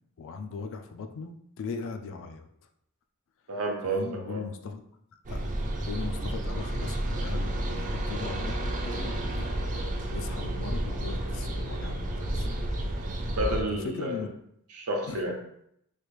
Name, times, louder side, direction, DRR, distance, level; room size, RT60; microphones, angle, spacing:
voice 1, 0.2-2.5 3.8-4.8 5.3-5.4 5.9-9.5 10.1-12.5 13.7-14.3 15.1-15.2, left 4 dB, 60° left, 6 dB, 0.4 m, -38 dB
voice 2, 3.5-4.4 13.3-14.2 14.7-15.4, right 1 dB, 75° right, 1 dB, 0.7 m, -30 dB
sound 1, 5.3-13.6, right 1 dB, 35° right, 0.4 m, -31 dB
3.2 x 2.4 x 3.1 m, 0.74 s
head